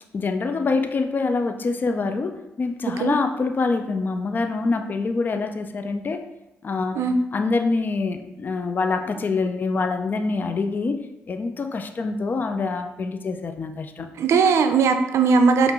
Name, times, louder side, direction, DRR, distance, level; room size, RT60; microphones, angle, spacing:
voice 1, 0.1-6.3 6.6-7.0 7.3-11.0 11.3-14.1, left 3 dB, 40° left, 7 dB, 0.4 m, -25 dB
voice 2, 14.2-15.7, right 5 dB, 70° right, 7 dB, 0.4 m, -18 dB
5.1 x 2.5 x 3.0 m, 0.92 s
cardioid pair, 70°, 5 cm